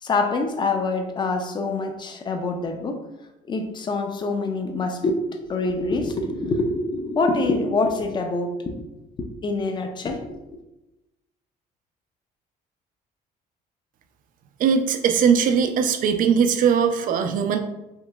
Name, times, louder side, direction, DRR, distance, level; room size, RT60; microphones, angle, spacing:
voice 1, 0.0-3.1 3.5-5.2 5.4-8.9 9.2-10.4, left 3 dB, 25° left, 5 dB, 0.4 m, -25 dB
voice 2, 14.6-17.6, right 7 dB, 55° right, 7 dB, 0.4 m, -20 dB
3.1 x 2.9 x 2.3 m, 0.96 s
cardioid pair, 110°, 17 cm